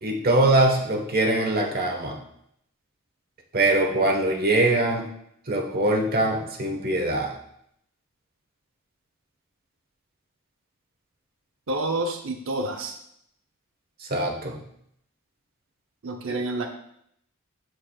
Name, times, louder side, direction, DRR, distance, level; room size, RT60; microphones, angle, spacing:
voice 1, 0.0-2.2 3.5-5.1 5.5-7.3 14.1-14.6 16.3-16.4, right 2 dB, 45° right, 2 dB, 1.3 m, -22 dB
voice 2, 11.7-12.9 16.0-16.7, right 2 dB, 65° right, 3 dB, 0.7 m, -28 dB
13.5 x 4.7 x 2.4 m, 0.71 s
head